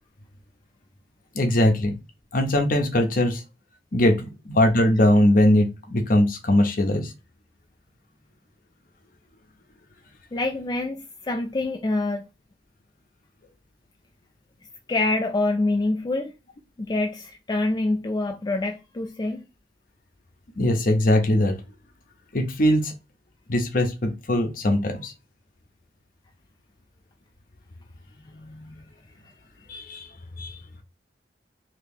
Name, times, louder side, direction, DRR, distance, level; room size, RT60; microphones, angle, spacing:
voice 1, 1.3-1.9 2.3-3.4 3.9-7.1 20.6-21.6 22.3-22.9 23.5-25.1 29.7-30.1 30.4-30.6, left 1 dB, 50° left, 0.7 m, -21 dB
voice 2, 10.3-12.2 14.9-16.3 16.8-19.4 28.2-28.8, left 2 dB, 25° left, 0.3 m, -26 dB
2.9 x 2.9 x 3.5 m
head